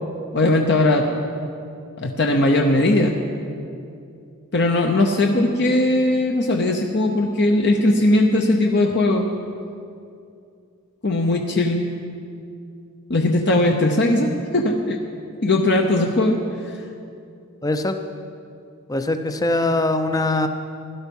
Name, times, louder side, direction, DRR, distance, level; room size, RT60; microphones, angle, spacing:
voice 1, 0.3-1.1 2.0-3.2 4.5-9.2 11.0-11.9 13.1-15.0 15.4-16.4 16.7-16.8, left 2 dB, 50° left, 2 dB, 0.9 m, -19 dB
voice 2, 17.6-18.0 18.9-20.5, left 2 dB, 15° left, 8 dB, 0.6 m, -22 dB
16.5 x 12.0 x 5.4 m, 2.5 s
head